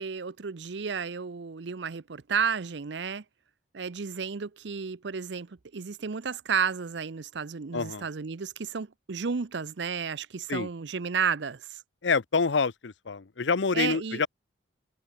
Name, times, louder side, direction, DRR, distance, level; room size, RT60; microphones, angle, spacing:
voice 1, 0.0-3.2 3.7-11.8 13.7-14.2, right 6 dB, 70° right, 0.6 m, -32 dB
voice 2, 7.7-8.1 10.5-10.7 12.0-14.3, left 4 dB, 75° left, 0.7 m, -27 dB
head